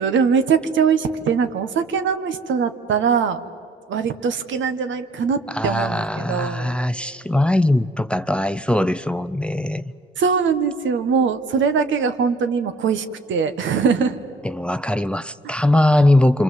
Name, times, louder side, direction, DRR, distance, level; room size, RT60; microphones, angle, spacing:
voice 1, 0.0-3.4 3.9-6.7 10.2-14.2, right 6 dB, 70° right, 1.4 m, -21 dB
voice 2, 5.5-9.9 14.4-16.4, left 1 dB, 5° left, 0.6 m, -20 dB
26.5 x 26.0 x 7.7 m
cardioid pair, 90°, 20 cm